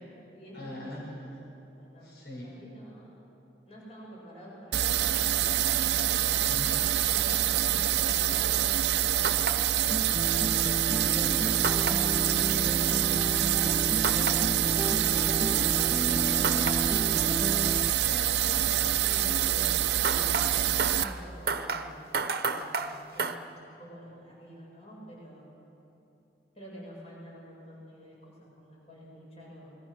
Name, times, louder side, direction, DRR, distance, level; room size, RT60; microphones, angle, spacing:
voice 1, 0.0-2.1 2.4-3.1 3.7-6.2 6.9-10.3 14.6-17.4 18.5-25.5 26.6-29.8, equal, 35° left, -4 dB, 7.3 m, -48 dB
voice 2, 0.5-1.1 2.0-2.5 6.5-6.9 16.3-16.4 18.1-18.4 23.1-23.3, left 1 dB, 70° left, -3 dB, 5.9 m, -42 dB
sound 1, 4.7-21.0, right 11 dB, 75° right, 0.6 m, -26 dB
sound 2, 9.2-9.6 11.6-12.0 14.0-14.4 16.4-16.8 20.0-23.4, right 4 dB, 55° right, 1.0 m, -31 dB
sound 3, 9.9-17.9, right 1 dB, 15° right, 0.4 m, -33 dB
28.0 x 22.0 x 6.4 m, 2.9 s
head